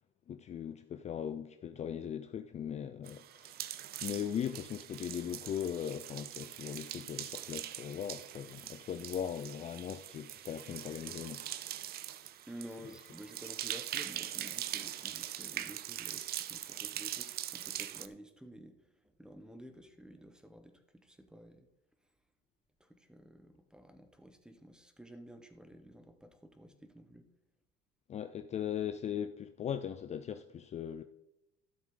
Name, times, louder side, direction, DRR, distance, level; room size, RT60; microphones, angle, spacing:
voice 1, 0.3-3.7 4.0-11.4 28.1-31.0, left 9 dB, 35° left, 0.5 m, -39 dB
sound 1, 3.1-18.1, right 12 dB, 50° right, 0.6 m, -42 dB
voice 2, 12.5-18.8 19.0-21.7 22.8-27.3, equal, 5° right, 1.2 m, -52 dB
12.5 x 7.3 x 3.9 m
supercardioid pair, 105°, 21 cm